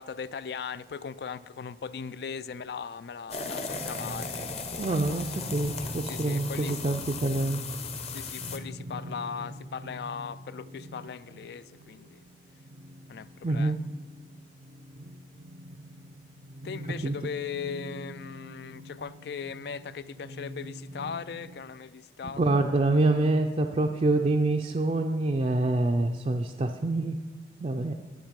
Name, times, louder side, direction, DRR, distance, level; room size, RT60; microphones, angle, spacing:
voice 1, 0.0-4.9 6.1-6.8 8.0-12.2 13.1-13.7 16.6-22.6, left 6 dB, 70° left, 17 dB, 0.3 m, -39 dB
sound 1, 3.3-8.6, left 4 dB, 35° left, 0.8 m, -37 dB
sound 2, 3.7-21.7, equal, 70° right, 0.7 m, -44 dB
voice 2, 4.8-7.6 13.4-13.8 17.0-17.1 22.2-27.2 27.6-27.9, right 2 dB, 35° right, 3 dB, 0.4 m, -26 dB
10.5 x 8.8 x 5.2 m, 1.3 s
head